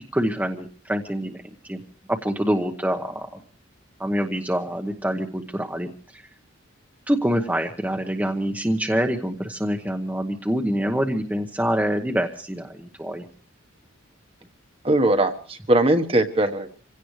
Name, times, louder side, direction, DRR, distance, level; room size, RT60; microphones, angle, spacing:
voice 1, 0.1-1.4 1.6-1.8 2.1-3.4 4.0-6.2 7.1-13.2, equal, 10° right, 3 dB, 1.0 m, -26 dB
voice 2, 14.8-16.7, right 1 dB, 25° right, 7 dB, 1.3 m, -20 dB
27.0 x 17.0 x 3.2 m, 0.40 s
head